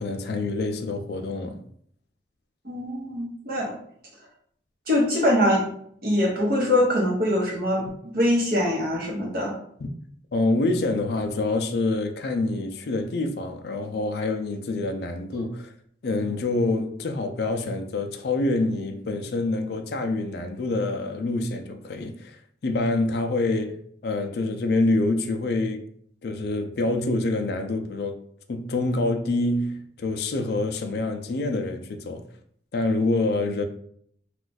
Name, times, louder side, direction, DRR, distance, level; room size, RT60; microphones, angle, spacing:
voice 1, 0.0-1.6 7.8-7.9 9.8-9.9 10.3-15.7 16.0-22.4 22.6-23.7 24.0-25.8 26.2-28.2 28.5-32.2 32.7-33.6, left 2 dB, 55° left, 0.4 m, -26 dB
voice 2, 2.6-3.7 4.9-5.6 6.0-9.5, left 1 dB, 50° right, 1.0 m, -23 dB
2.4 x 2.4 x 3.9 m
head